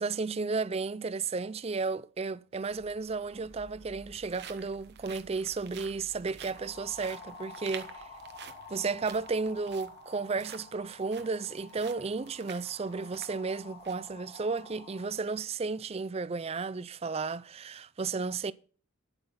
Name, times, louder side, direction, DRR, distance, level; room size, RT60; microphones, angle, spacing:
voice 1, 0.0-8.1 8.7-18.5, right 4 dB, 30° right, 0.4 m, -33 dB
sound 1, 2.5-2.6 3.5-14.1 14.5-14.6 15.1-15.4, right 8 dB, 50° right, 0.9 m, -50 dB
sound 2, 2.7-9.9, right 1 dB, 90° right, 2.0 m, -58 dB
sound 3, 6.5-15.1, left 3 dB, 30° left, 2.0 m, -50 dB
9.9 x 8.1 x 5.7 m
head